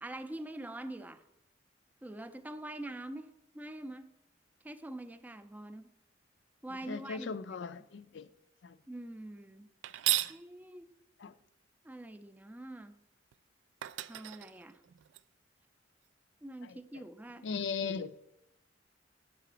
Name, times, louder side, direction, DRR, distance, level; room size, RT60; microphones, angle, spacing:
voice 1, 0.0-1.2 2.0-4.1 4.6-5.9 6.6-7.4 8.9-9.7 10.3-10.9 11.8-12.9 14.1-14.8 16.4-17.5, right 1 dB, 10° right, 0.4 m, -44 dB
voice 2, 6.8-8.3 8.6-8.8 10.1-10.2 11.2-11.3 16.6-17.0 17.4-18.2, left 5 dB, 75° left, 0.4 m, -38 dB
sound 1, 9.8-10.4 13.3-13.4 13.8-15.2, right 15 dB, 85° right, 0.3 m, -34 dB
5.8 x 4.9 x 6.6 m
head